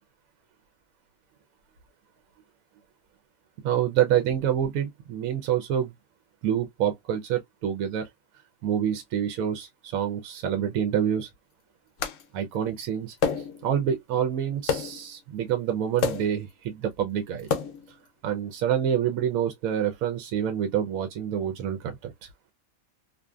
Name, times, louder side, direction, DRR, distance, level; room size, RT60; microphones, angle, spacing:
voice 1, 3.6-5.9 6.4-8.1 8.6-11.3 12.3-13.1 13.6-17.5 18.2-22.3, right 9 dB, 80° right, 1.0 m, -27 dB
Hits with Belt, 12.0-12.2 13.2-13.7 14.7-15.1 16.0-16.4 17.4-17.9, left 6 dB, 70° left, 0.9 m, -28 dB
2.6 x 2.5 x 2.2 m
omnidirectional pair, 1.5 m